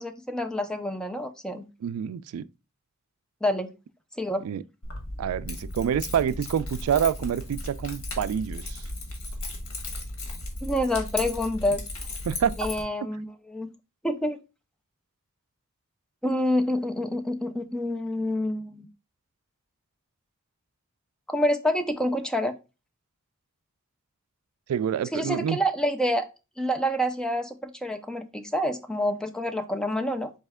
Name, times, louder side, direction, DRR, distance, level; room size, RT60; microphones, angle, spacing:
voice 1, 0.0-1.7 3.4-3.7 4.2-4.5 10.6-11.8 12.6-13.7 14.0-14.4 16.2-18.9 21.3-22.5 25.1-26.2 26.6-30.3, equal, 5° left, 0.4 m, -27 dB
voice 2, 1.8-2.5 4.4-4.6 5.2-8.8 12.3-12.5 24.7-25.6, right 8 dB, 90° right, 0.3 m, -27 dB
Keys jangling, 4.8-12.8, left 2 dB, 75° left, 1.3 m, -35 dB
4.3 x 3.2 x 3.4 m
head